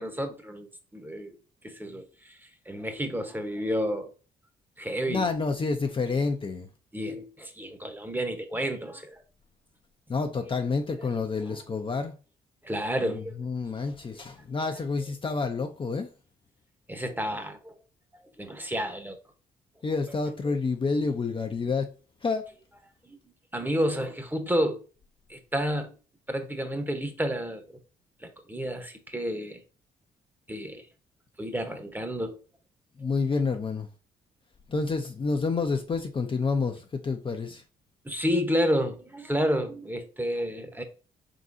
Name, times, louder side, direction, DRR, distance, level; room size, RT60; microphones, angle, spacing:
voice 1, 0.0-1.4 1.6-2.4 2.7-4.1 4.8-5.3 6.9-9.2 11.4-11.6 12.6-13.4 13.8-13.9 16.9-17.7 18.1-19.2 23.0-23.2 23.5-24.8 25.3-25.9 26.3-27.6 28.2-29.6 30.5-30.9 31.4-32.4 38.0-40.8, equal, 10° right, 0.9 m, -30 dB
voice 2, 5.1-6.7 10.1-12.2 13.0-16.1 19.8-21.9 22.2-22.5 33.0-33.9 34.7-37.6, left 4 dB, 30° left, 0.5 m, -29 dB
3.9 x 3.8 x 2.6 m
supercardioid pair, 60°, 17 cm